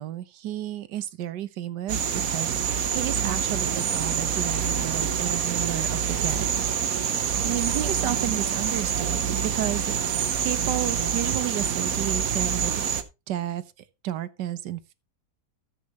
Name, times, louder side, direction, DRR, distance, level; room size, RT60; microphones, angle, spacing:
voice 1, 0.0-6.5 6.8-13.0 13.3-13.6 14.0-14.9, right 12 dB, 80° right, 1.5 m, -32 dB
sound 1, 1.9-13.0, right 8 dB, 60° right, 1.3 m, -26 dB
14.0 x 7.6 x 3.0 m
omnidirectional pair, 1.8 m